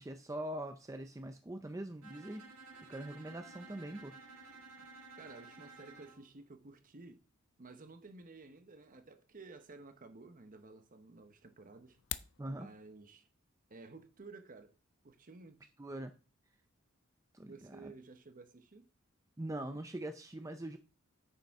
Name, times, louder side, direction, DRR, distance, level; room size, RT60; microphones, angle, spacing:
voice 1, 0.0-2.5 2.9-4.4 12.4-12.7 15.8-16.1 17.3-17.9 19.4-20.8, right 1 dB, 15° right, 0.5 m, -43 dB
Bowed string instrument, 2.0-6.2, right 3 dB, 80° right, 1.6 m, -54 dB
voice 2, 5.1-7.2 7.6-12.0 12.5-13.3 13.7-14.8 15.0-15.7 17.4-18.9, right 3 dB, 40° right, 0.9 m, -54 dB
sound 1, 11.9-12.4, left 12 dB, 60° left, 0.5 m, -41 dB
9.1 x 6.7 x 3.6 m
head